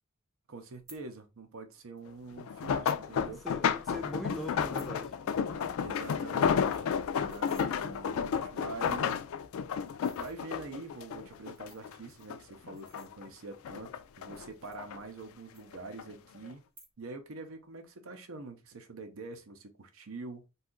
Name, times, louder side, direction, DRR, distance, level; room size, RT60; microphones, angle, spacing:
voice 1, 0.5-3.4 5.8-9.2 10.2-16.6 17.0-20.5, right 3 dB, 70° right, 0.6 m, -45 dB
sound 1, 0.7-1.0 2.0-2.1 2.6-3.0 3.4-3.5 3.7-4.0 4.4-5.0 5.3-5.5 5.8-5.9 6.2-6.3 6.5-7.7 8.4-8.5 8.8-9.4 9.9-10.4 11.3-13.5 14.2-15.3 15.5-16.2 16.6-17.2 17.5-17.9, right 2 dB, 35° right, 1.6 m, -57 dB
sound 2, 2.4-12.0 12.3-13.3 13.6-15.0 15.7-16.0 16.4-16.5, left 7 dB, 75° left, 0.3 m, -32 dB
voice 2, 3.2-5.1 5.5-5.8, left 1 dB, ahead, 0.4 m, -41 dB
2.7 x 2.3 x 3.7 m
head